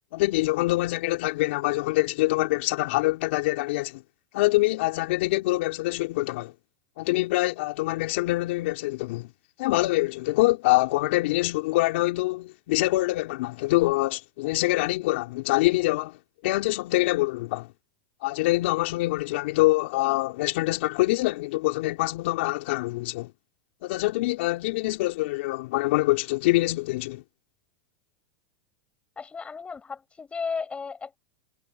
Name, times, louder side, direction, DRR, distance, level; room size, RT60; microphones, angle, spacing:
voice 1, 0.1-4.0 4.3-6.5 7.0-9.3 9.6-16.2 16.4-17.7 18.2-23.3 23.8-27.2, left 20 dB, 65° left, 4.0 m, -25 dB
voice 2, 29.2-31.2, left 5 dB, 15° left, 6.1 m, -34 dB
hypercardioid pair, 120°, 7 cm